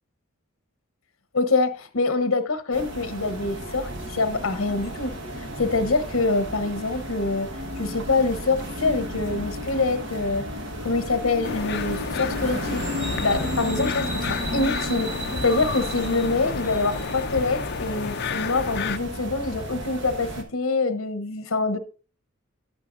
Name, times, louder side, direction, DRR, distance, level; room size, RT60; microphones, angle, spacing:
voice 1, 1.3-7.5 7.8-10.5 10.8-15.1 15.4-21.8, left 3 dB, 70° left, 1.0 m, -25 dB
sound 1, 2.7-20.4, equal, 60° right, 1.4 m, -33 dB
sound 2, 11.4-19.0, left 5 dB, 50° left, 0.6 m, -31 dB
11.5 x 9.1 x 2.6 m
head